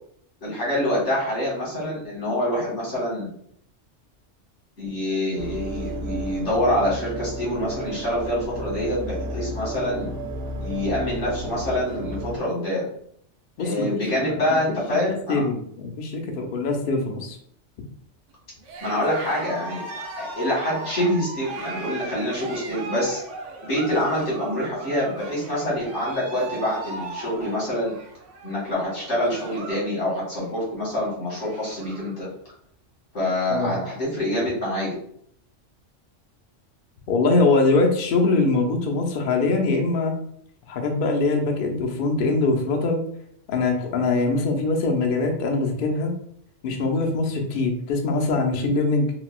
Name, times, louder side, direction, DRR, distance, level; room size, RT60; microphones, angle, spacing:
voice 1, 0.4-3.3 4.8-10.1 10.6-12.8 13.6-15.4 18.8-19.8 20.2-23.2 23.6-28.0 28.4-32.3 33.1-34.9, left 1 dB, 90° left, -6 dB, 1.9 m, -26 dB
sound 1, 5.4-12.4, right 1 dB, 60° right, 0.8 m, -32 dB
voice 2, 15.3-17.4 33.5-33.8 37.1-40.1 40.7-43.0 43.5-46.1 46.6-49.1, left 3 dB, 60° left, 2 dB, 0.6 m, -22 dB
Cheering, 18.6-29.9 30.2-30.6 31.0-31.1 31.3-32.1, right 3 dB, 85° right, 0.9 m, -37 dB
3.8 x 2.2 x 2.3 m, 0.66 s
omnidirectional pair, 1.2 m